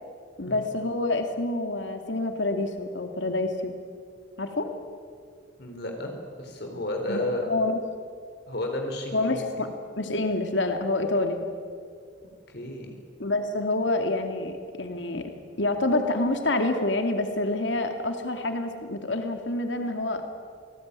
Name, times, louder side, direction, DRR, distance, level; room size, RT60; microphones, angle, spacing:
voice 1, 0.4-3.7 4.4-4.7 7.1-7.8 9.1-11.4 13.2-15.3 15.6-20.2, left 2 dB, 90° left, 5 dB, 2.5 m, -27 dB
voice 2, 5.6-6.1 6.4-7.6 8.5-9.6 12.5-12.9, left 1 dB, 65° left, 3 dB, 4.1 m, -32 dB
27.5 x 20.0 x 9.8 m, 2.2 s
head